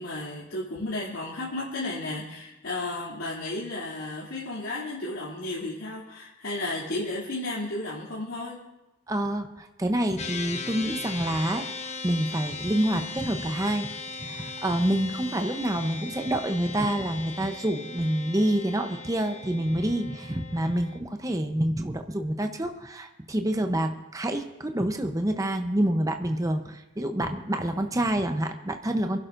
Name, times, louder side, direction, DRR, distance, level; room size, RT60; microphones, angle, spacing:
voice 1, 0.0-8.6 15.1-15.8, left 2 dB, 80° left, -7 dB, 2.8 m, -33 dB
voice 2, 9.1-13.9 14.2-29.2, right 1 dB, 15° right, 6 dB, 0.7 m, -27 dB
sound 1, 10.2-21.0, left 3 dB, 30° left, 0.9 m, -38 dB
27.5 x 11.5 x 2.6 m, 1.0 s
head